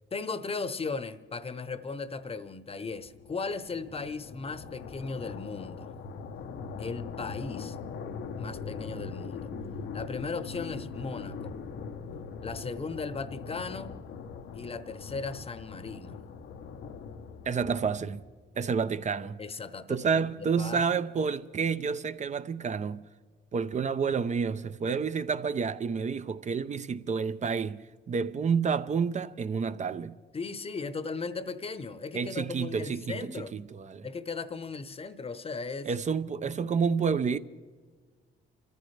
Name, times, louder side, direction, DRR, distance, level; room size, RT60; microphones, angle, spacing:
voice 1, 0.1-5.9 6.8-7.8 8.4-9.5 9.9-11.6 12.4-14.0 14.5-16.2 19.4-20.8 30.3-33.5 34.0-35.9, left 4 dB, 30° left, 0.9 m, -37 dB
sound 1, 2.2-18.5, left 5 dB, 80° left, 0.9 m, -41 dB
voice 2, 17.5-18.2 18.6-19.4 19.9-23.0 23.5-30.1 32.1-34.1 35.9-37.4, right 6 dB, 35° right, 0.6 m, -29 dB
29.5 x 14.5 x 3.3 m
cardioid pair, 90°, 20 cm